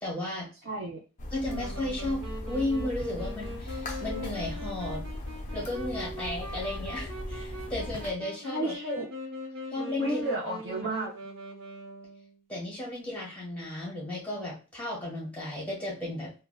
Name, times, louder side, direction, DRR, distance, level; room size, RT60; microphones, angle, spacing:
voice 1, 0.0-0.5 1.3-5.0 5.5-8.7 9.7-10.2 12.5-16.4, left 1 dB, 5° left, -6 dB, 1.4 m, -34 dB
voice 2, 0.6-1.0 8.5-9.1 10.0-11.1, right 1 dB, 40° right, -6 dB, 1.3 m, -32 dB
sound 1, 1.2-8.1, left 1 dB, 35° left, 0.4 m, -38 dB
Wind instrument woodwind instrument, 1.5-12.4, equal, 60° right, 0.7 m, -42 dB
3.5 x 2.0 x 2.2 m, 0.33 s
head